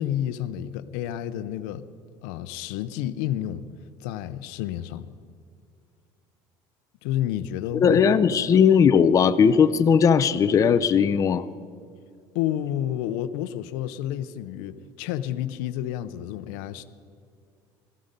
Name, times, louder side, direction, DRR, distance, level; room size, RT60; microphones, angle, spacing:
voice 1, 0.0-1.9 2.2-3.6 4.0-5.1 7.0-8.1 8.5-8.6 12.3-16.8, left 11 dB, 85° left, 13 dB, 0.7 m, -30 dB
voice 2, 7.7-11.4, left 7 dB, 35° left, 11 dB, 0.6 m, -18 dB
17.0 x 14.0 x 5.3 m, 2.3 s
cardioid pair, 120°, 10 cm